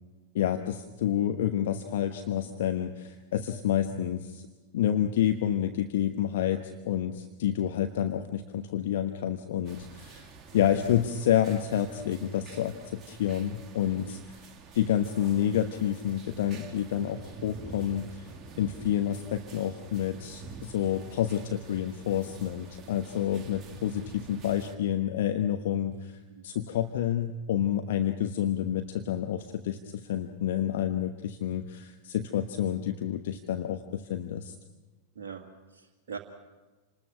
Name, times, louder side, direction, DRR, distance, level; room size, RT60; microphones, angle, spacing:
voice 1, 0.3-4.4 4.7-14.2 14.7-18.3 18.6-26.1 26.4-34.5, left 10 dB, 55° left, 7 dB, 1.1 m, -29 dB
sound 1, 9.6-24.8, right 4 dB, 25° right, 2.1 m, -48 dB
voice 2, 35.1-36.2, right 6 dB, 55° right, 0 dB, 2.0 m, -42 dB
27.5 x 20.0 x 6.1 m, 1.2 s
figure-of-eight pair, 90°, 0 cm